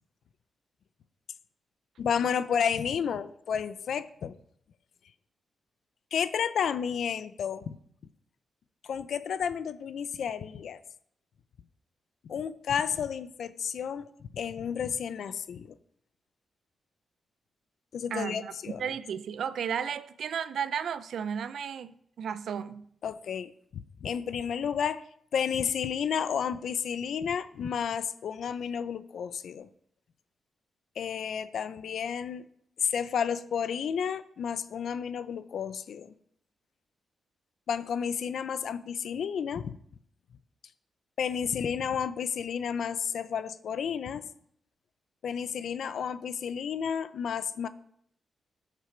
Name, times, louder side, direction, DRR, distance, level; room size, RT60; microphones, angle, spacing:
voice 1, 2.0-4.4 6.1-7.8 8.8-10.8 12.3-14.1 14.3-15.8 17.9-18.8 23.0-25.0 25.3-29.7 31.0-32.4 32.8-36.1 37.7-39.8 41.2-44.2 45.2-47.7, left 7 dB, 70° left, 0.6 m, -31 dB
voice 2, 18.1-22.9, right 7 dB, 70° right, 0.6 m, -34 dB
12.5 x 6.8 x 4.5 m
wide cardioid pair, 125°, 0 cm